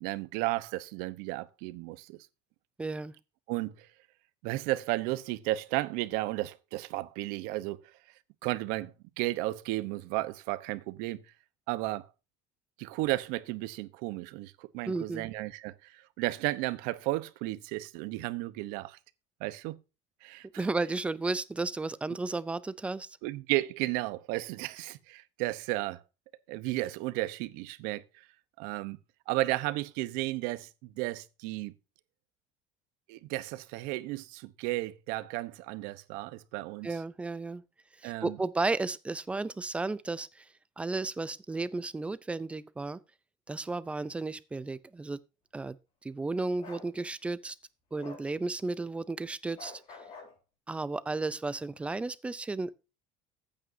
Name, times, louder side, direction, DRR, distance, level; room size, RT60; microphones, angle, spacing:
voice 1, 0.0-2.2 3.5-3.9 4.4-7.8 8.4-11.2 11.7-12.0 12.8-19.0 19.4-19.8 20.2-20.5 23.2-26.0 26.5-28.2 28.6-29.0 29.3-31.7 33.1-36.9 38.0-38.4, right 18 dB, 65° right, 0.9 m, -33 dB
voice 2, 2.8-3.1 14.9-15.3 20.6-23.1 36.8-37.6 38.0-40.5 40.8-43.0 43.5-45.2 45.5-45.8 46.0-47.6 47.9-49.8 50.7-52.8, right 3 dB, 5° right, 0.4 m, -33 dB
Bark, 46.6-46.9 48.0-48.3 49.6-50.3, left 4 dB, 35° left, 3.7 m, -46 dB
14.5 x 8.8 x 2.7 m
cardioid pair, 170°, 16 cm